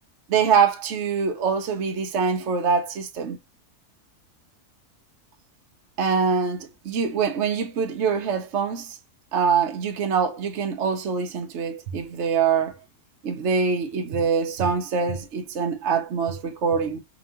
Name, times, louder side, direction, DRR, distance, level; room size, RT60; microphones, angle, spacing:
voice 1, 0.3-3.4 6.0-9.0 9.3-12.7 13.2-17.0, right 6 dB, 55° right, 1.0 m, -24 dB
4.8 x 3.0 x 2.7 m
omnidirectional pair, 1.6 m